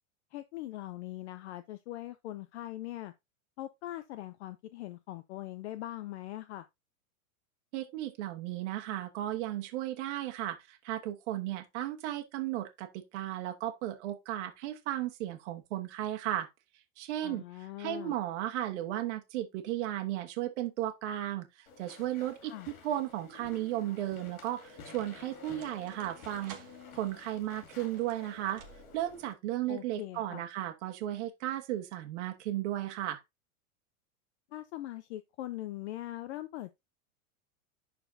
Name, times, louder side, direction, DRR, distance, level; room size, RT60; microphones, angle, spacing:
voice 1, 0.3-3.1 3.6-6.7 17.2-18.1 22.4-22.7 29.7-30.4 34.5-36.8, left 15 dB, 50° left, 0.6 m, -41 dB
voice 2, 7.7-16.5 17.0-22.5 22.8-26.6 26.9-28.6 28.9-33.2, right 13 dB, 55° right, 1.3 m, -35 dB
Walk footsteps / Chatter / Squeak, 21.7-29.3, left 5 dB, 70° left, 2.5 m, -52 dB
sound 1, 22.4-22.9 23.7-29.2, right 8 dB, 15° right, 0.3 m, -55 dB
11.0 x 4.1 x 2.7 m
supercardioid pair, 155°, 43 cm